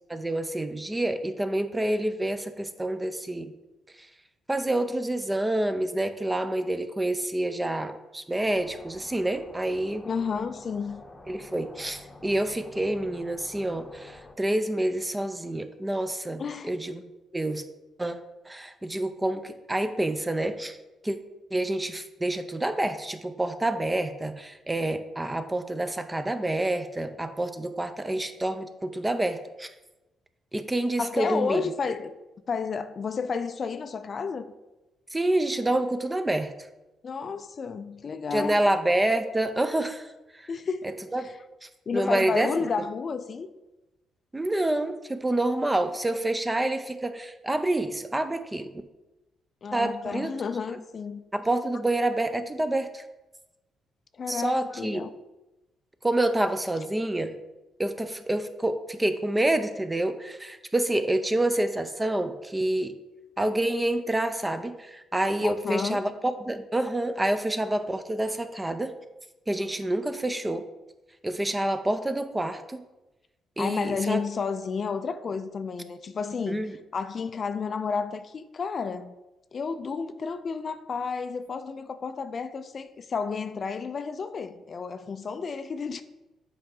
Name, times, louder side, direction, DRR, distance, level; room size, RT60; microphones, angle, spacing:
voice 1, 0.1-3.5 4.5-10.0 11.3-17.0 17.3-17.6 18.0-20.8 21.0-21.2 21.5-29.7 30.5-31.6 35.1-36.5 38.3-40.1 40.3-40.5 41.1-41.3 41.6-42.5 44.3-48.7 49.7-50.3 51.3-53.0 54.3-55.0 56.0-57.3 57.8-62.9 63.4-68.9 69.5-70.7 71.2-72.8 73.6-74.2 76.5-76.8, right 1 dB, 15° right, 0.5 m, -28 dB
sound 1, 8.4-14.3, left 2 dB, 15° left, 0.9 m, -48 dB
voice 2, 10.0-11.0 16.4-16.7 31.0-32.2 32.5-34.5 37.0-38.6 40.5-41.4 41.9-43.5 49.6-51.2 54.1-55.1 65.4-66.1 73.6-76.6 76.9-79.1 79.5-86.0, left 5 dB, 45° left, 0.4 m, -31 dB
7.5 x 4.8 x 3.8 m
cardioid pair, 90°, 0 cm